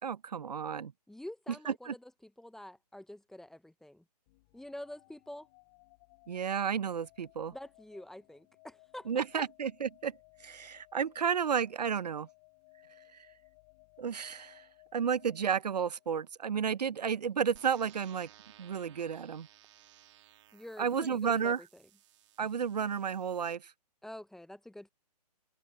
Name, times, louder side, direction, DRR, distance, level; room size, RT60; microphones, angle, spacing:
voice 1, 0.0-0.9 1.7-1.9 6.3-7.5 9.1-10.1 10.4-12.3 14.0-14.6 14.9-18.3 18.6-19.5 20.8-21.6 22.4-23.7, right 7 dB, 75° right, 1.0 m, -32 dB
voice 2, 1.1-4.0 4.5-5.5 7.5-9.2 20.5-21.7 24.0-24.9, left 1 dB, ahead, 0.9 m, -47 dB
sound 1, 4.3-16.4, left 28 dB, 30° left, 5.7 m, -62 dB
sound 2, 17.6-23.6, right 13 dB, 45° right, 3.4 m, -60 dB
open air
hypercardioid pair, 145°, 21 cm